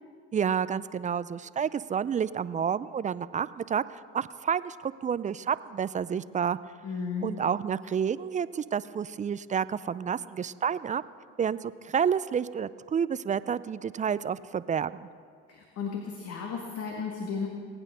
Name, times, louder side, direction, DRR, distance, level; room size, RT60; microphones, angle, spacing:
voice 1, 0.3-6.6 7.2-11.0 11.4-15.1, right 7 dB, 25° right, 16 dB, 0.4 m, -29 dB
voice 2, 6.8-7.3 15.5-17.5, left 5 dB, 55° left, 1 dB, 1.9 m, -34 dB
20.0 x 9.1 x 6.7 m, 2.2 s
supercardioid pair, 80°, 29 cm